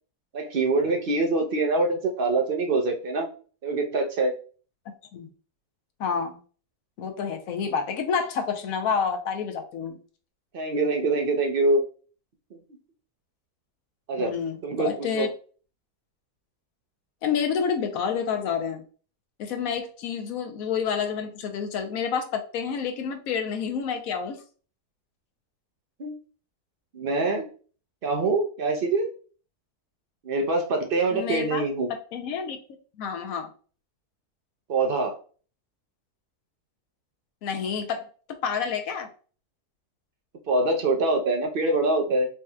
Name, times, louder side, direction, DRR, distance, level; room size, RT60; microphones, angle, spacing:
voice 1, 0.3-3.3 3.6-4.3 10.5-11.8 14.1-14.3 14.6-15.3 26.0-26.2 26.9-27.5 28.0-29.1 30.2-31.9 34.7-35.2 40.5-42.3, right 2 dB, 55° right, 3 dB, 0.6 m, -24 dB
voice 2, 6.0-6.4 7.0-10.0 14.2-15.3 17.2-18.8 19.4-24.4 31.1-31.6 32.1-32.6 33.0-33.5 37.4-38.1 38.4-39.1, left 6 dB, 70° left, 5 dB, 1.1 m, -29 dB
4.7 x 2.8 x 2.2 m, 0.39 s
omnidirectional pair, 1.6 m